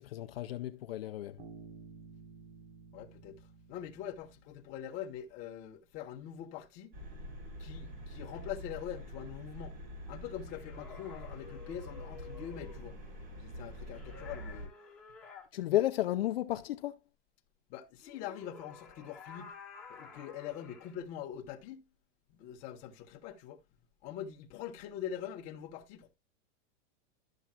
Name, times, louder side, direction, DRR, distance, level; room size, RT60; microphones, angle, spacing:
voice 1, 0.0-1.4 15.5-17.0, left 14 dB, 55° left, 0.6 m, -33 dB
Bass guitar, 1.4-5.2, right 4 dB, 60° right, 3.9 m, -53 dB
voice 2, 2.9-6.9 7.6-9.8 10.1-13.0 13.4-14.7 17.7-19.5 19.9-21.8 22.3-23.6 24.0-26.2, left 10 dB, 20° left, 1.0 m, -43 dB
sound 1, 6.9-14.7, equal, 35° right, 3.8 m, -46 dB
sound 2, 10.5-12.9 13.9-15.5 18.0-21.0, left 5 dB, ahead, 1.6 m, -52 dB
12.0 x 7.1 x 2.3 m
supercardioid pair, 180°, 36 cm